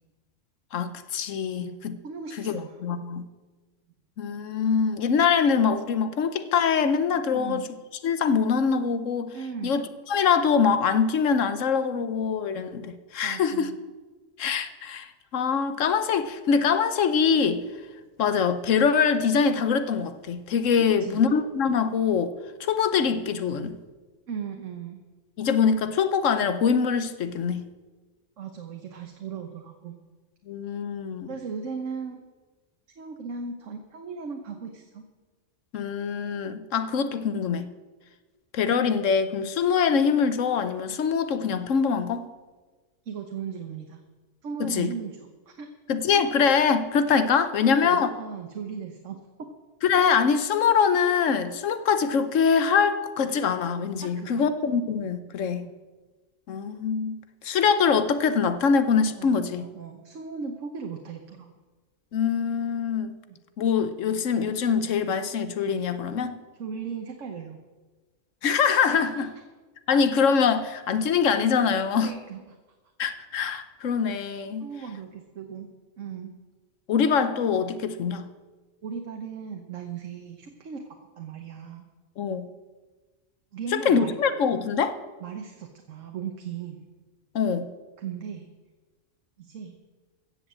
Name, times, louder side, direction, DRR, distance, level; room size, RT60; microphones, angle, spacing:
voice 1, 0.7-2.0 2.4-3.3 4.2-7.7 8.0-9.3 9.6-9.8 10.1-13.7 14.4-17.6 18.2-22.3 22.6-23.8 25.4-27.7 30.5-31.3 35.7-37.7 38.5-42.3 44.6-44.9 45.9-48.1 49.8-55.7 56.5-57.2 57.4-59.7 62.1-63.2 63.6-66.4 68.4-69.3 69.9-72.1 73.0-74.7 76.9-78.3 82.2-82.5 83.7-84.9 87.3-87.7, left 6 dB, 90° left, 11 dB, 1.2 m, -24 dB
voice 2, 1.5-2.8 7.3-7.7 9.3-9.8 13.2-13.8 21.0-21.2 24.3-25.0 28.4-30.0 31.3-32.2 33.0-35.0 43.1-44.0 44.4-45.7 47.6-49.5 54.0-54.5 55.6-55.8 59.2-61.5 63.3-63.4 66.6-67.6 68.9-69.3 72.0-72.6 74.6-76.3 78.8-80.8 81.2-81.9 83.5-84.2 85.2-86.8 88.0-88.5 89.4-89.7, right 6 dB, 85° right, 4 dB, 1.4 m, -37 dB
15.0 x 7.3 x 7.5 m, 1.3 s
omnidirectional pair, 1.3 m